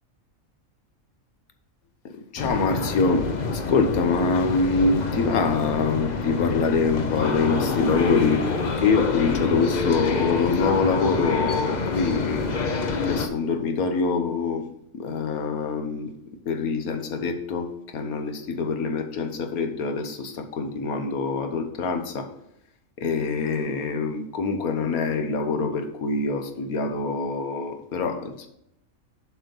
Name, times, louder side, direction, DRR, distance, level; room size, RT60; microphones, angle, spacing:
voice 1, 2.3-14.7 14.9-16.1 16.5-22.3 23.0-28.5, left 4 dB, 85° left, 5 dB, 1.5 m, -25 dB
sound 1, 2.4-13.3, left 4 dB, 40° left, 0.7 m, -27 dB
7.5 x 5.0 x 5.3 m, 0.79 s
omnidirectional pair, 1.5 m